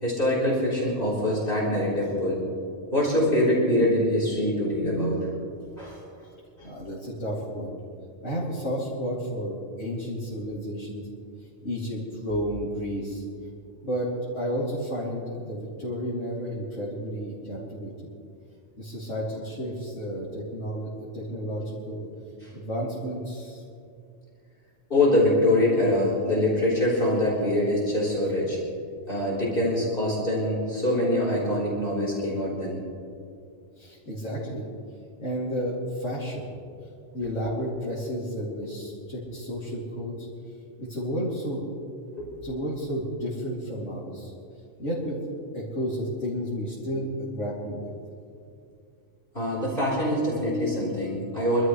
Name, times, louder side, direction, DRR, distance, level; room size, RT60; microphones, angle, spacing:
voice 1, 0.0-2.4 2.9-5.2 5.6-6.0 6.6-6.7 22.4-22.5 24.9-28.6 29.1-32.8 42.1-42.3 49.3-51.7, left 1 dB, 45° left, -6 dB, 4.1 m, -24 dB
voice 2, 6.6-7.7 8.2-11.1 11.6-13.2 13.8-14.1 14.3-17.9 18.8-22.1 22.5-23.6 33.7-34.7 35.2-36.4 37.1-40.3 40.8-41.6 42.4-44.3 44.8-45.2 45.5-47.9, equal, 75° left, -8 dB, 3.3 m, -32 dB
26.5 x 13.0 x 3.2 m, 2.4 s
omnidirectional pair, 1.2 m